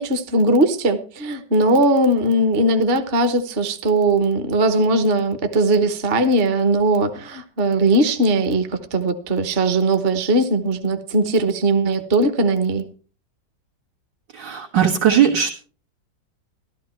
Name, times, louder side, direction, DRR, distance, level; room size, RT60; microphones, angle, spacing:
voice 1, 0.0-12.8, right 2 dB, 40° right, 8 dB, 1.1 m, -19 dB
voice 2, 14.3-15.5, right 8 dB, 75° right, -2 dB, 2.4 m, -18 dB
14.5 x 12.5 x 4.4 m, 0.39 s
omnidirectional pair, 1.9 m